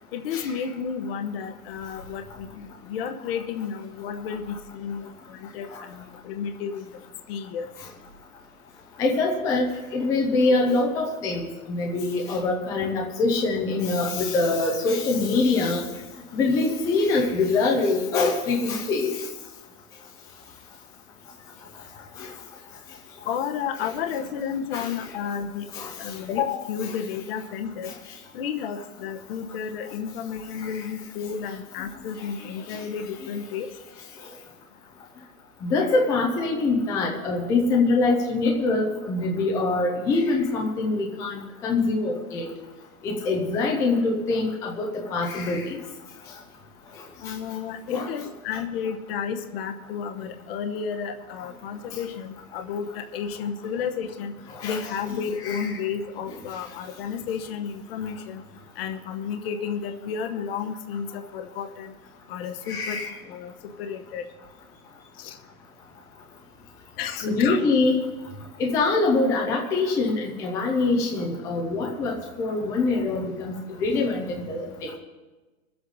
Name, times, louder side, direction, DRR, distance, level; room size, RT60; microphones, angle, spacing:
voice 1, 0.1-6.9 7.3-7.7 23.2-25.7 26.0-27.9 28.3-33.7 47.2-54.3 54.6-58.4 58.8-61.9 62.3-63.5 63.8-64.2 65.2-65.4 67.0-67.6, left 7 dB, 40° left, 6 dB, 1.0 m, -32 dB
voice 2, 9.0-15.8 16.3-19.2 22.2-22.3 23.8-23.9 24.7-24.9 25.7-25.9 27.9-28.0 30.6-30.8 32.7-32.8 35.6-42.5 43.0-45.8 47.9-48.1 54.6-54.9 55.4-55.7 62.7-63.1 67.2-68.0 68.6-75.0, left 3 dB, 5° left, 0 dB, 0.5 m, -24 dB
21.5 x 8.0 x 4.0 m, 1.2 s
hypercardioid pair, 160°, 43 cm